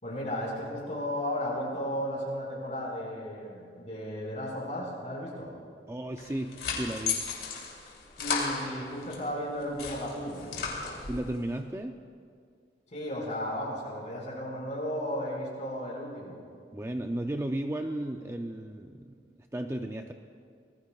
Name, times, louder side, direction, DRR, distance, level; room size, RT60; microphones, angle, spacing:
voice 1, 0.0-5.5 8.2-10.4 12.9-16.4, equal, 40° left, -3 dB, 5.4 m, -34 dB
voice 2, 5.9-7.2 11.1-12.0 16.7-20.1, right 1 dB, 15° right, 4 dB, 0.5 m, -34 dB
sound 1, 6.2-9.2 9.6-11.3, left 5 dB, 60° left, 3.3 m, -34 dB
26.5 x 20.0 x 2.4 m, 2.2 s
head